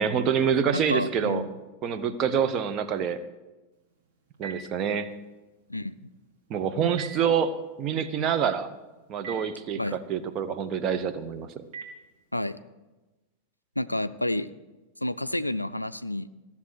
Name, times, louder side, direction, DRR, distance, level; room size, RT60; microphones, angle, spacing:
voice 1, 0.0-1.4 1.8-3.2 4.4-5.1 6.5-7.5 7.8-8.7 9.1-11.6, right 7 dB, 35° right, 9 dB, 0.8 m, -26 dB
voice 2, 0.7-1.5 5.7-6.0 9.7-10.0 12.3-12.6 13.8-14.5 15.0-16.3, left 1 dB, 85° left, 14 dB, 0.3 m, -30 dB
Telephone, 3.7-12.6, right 5 dB, 50° right, 2.6 m, -49 dB
14.5 x 7.1 x 6.3 m, 1.1 s
figure-of-eight pair, 90°, 0 cm